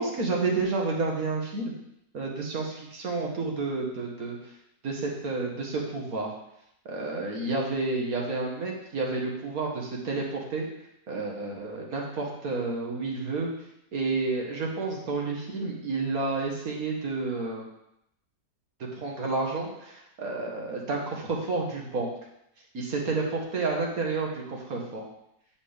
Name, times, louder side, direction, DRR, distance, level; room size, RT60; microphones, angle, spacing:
voice 1, 0.0-1.7 2.1-4.4 4.8-6.3 6.9-10.7 11.1-13.5 13.9-17.7 18.8-22.1 22.7-25.0, right 3 dB, 65° right, -1 dB, 1.9 m, -30 dB
9.3 x 5.6 x 3.5 m, 0.79 s
omnidirectional pair, 1.7 m